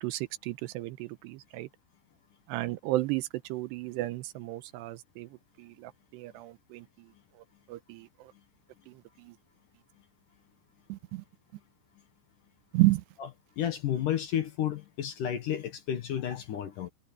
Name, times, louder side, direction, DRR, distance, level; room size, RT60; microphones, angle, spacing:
voice 1, 0.0-1.7 2.5-5.3 5.6-6.9 7.7-8.1 8.9-9.3 10.9-11.2 12.7-13.0, right 18 dB, 85° right, 2.9 m, -32 dB
voice 2, 13.6-16.9, left 10 dB, 65° left, 2.4 m, -31 dB
omnidirectional pair, 5.0 m